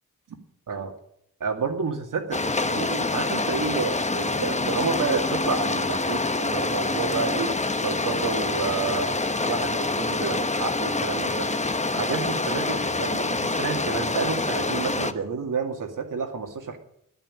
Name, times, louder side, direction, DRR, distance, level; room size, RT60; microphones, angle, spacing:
voice 1, 1.4-2.4 2.7-7.5 7.8-9.2 9.4-11.5 11.9-16.8, right 5 dB, 75° right, 4 dB, 2.4 m, -30 dB
sound 1, 2.3-15.1, left 2 dB, 20° left, 1.0 m, -26 dB
10.5 x 10.5 x 8.9 m, 0.73 s
cardioid pair, 65°, 32 cm